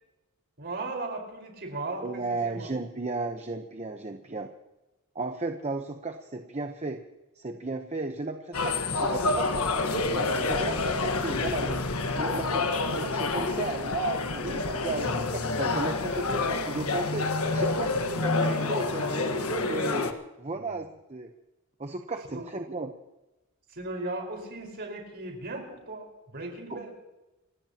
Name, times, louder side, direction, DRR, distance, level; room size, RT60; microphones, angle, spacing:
voice 1, 0.6-2.7 14.4-14.6 17.4-18.6 20.5-20.8 22.3-22.5 23.7-26.9, right 2 dB, 50° right, 2 dB, 4.8 m, -37 dB
voice 2, 2.0-4.5 5.1-7.0 7.4-11.9 12.2-17.3 17.5-20.1 20.4-21.3 21.8-22.9 26.7-26.8, right 3 dB, 30° right, 5 dB, 0.9 m, -34 dB
sound 1, 8.5-20.1, left 3 dB, 90° left, 1.4 m, -28 dB
29.0 x 16.5 x 2.9 m, 1.0 s
head